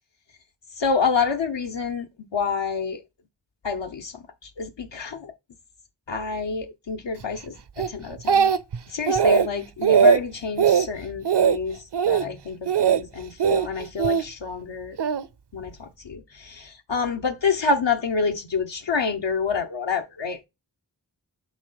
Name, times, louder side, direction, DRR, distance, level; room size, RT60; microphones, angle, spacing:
voice 1, 0.8-2.1 2.3-3.0 3.6-4.1 4.6-5.3 6.1-8.5 8.9-11.8 12.1-15.0 15.5-20.5, left 5 dB, 85° left, 0.9 m, -27 dB
Speech, 7.8-8.8 9.1-9.5 9.8-10.2 10.6-10.9 11.2-11.6 11.9-12.2 12.7-13.0 13.4-14.2 15.0-15.2, right 6 dB, 70° right, 0.6 m, -19 dB
6.2 x 3.4 x 5.6 m
wide cardioid pair, 45°, 43 cm